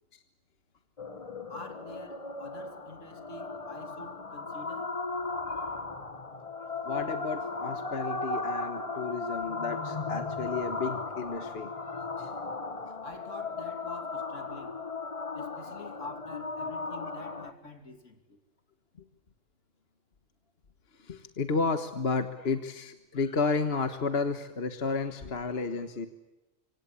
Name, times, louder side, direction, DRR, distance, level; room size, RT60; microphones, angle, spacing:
sound 1, 1.0-17.5, left 3 dB, 30° left, 1.4 m, -36 dB
voice 1, 1.5-4.9 13.0-14.8 15.3-18.4, left 2 dB, 70° left, 3.2 m, -46 dB
voice 2, 6.8-11.7 12.2-12.3 21.0-26.1, left 4 dB, 50° left, 1.6 m, -32 dB
25.5 x 25.5 x 8.5 m
omnidirectional pair, 1.3 m